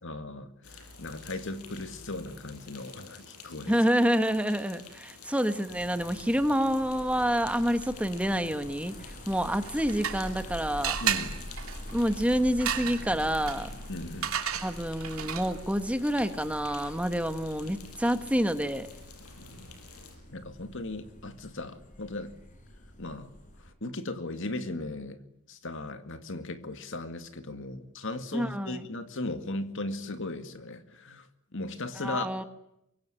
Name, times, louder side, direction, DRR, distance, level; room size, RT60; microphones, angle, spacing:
voice 1, 0.0-3.7 11.0-11.4 13.9-14.3 20.3-22.3 23.0-23.3 23.6-25.2 25.5-31.3 31.5-32.3, left 2 dB, 60° left, 9 dB, 2.2 m, -37 dB
sound 1, 0.6-20.2, left 4 dB, 85° left, 6.5 m, -50 dB
voice 2, 3.7-8.9 9.3-11.0 11.9-13.7 14.6-18.9 28.3-28.8 32.0-32.4, equal, 5° right, 9 dB, 1.4 m, -28 dB
sound 2, 5.7-23.7, left 1 dB, 35° left, 5.1 m, -45 dB
sound 3, 9.5-10.5 10.8-15.7, right 9 dB, 70° right, 3.1 m, -34 dB
24.5 x 23.0 x 9.9 m, 0.82 s
head